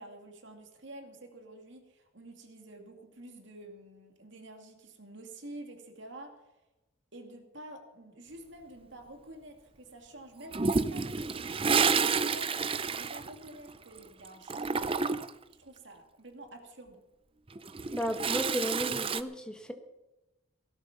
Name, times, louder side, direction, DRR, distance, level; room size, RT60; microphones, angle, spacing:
voice 1, 0.0-6.3 7.1-11.5 11.9-12.6 12.9-14.9 15.6-17.0, right 1 dB, 60° right, 4 dB, 2.4 m, -49 dB
Toilet flush, 10.5-14.0 14.2-15.4 17.5-19.2, right 5 dB, 25° right, 0.5 m, -29 dB
voice 2, 17.9-19.7, equal, 5° left, 5 dB, 1.4 m, -34 dB
17.5 x 11.5 x 5.9 m, 1.0 s
head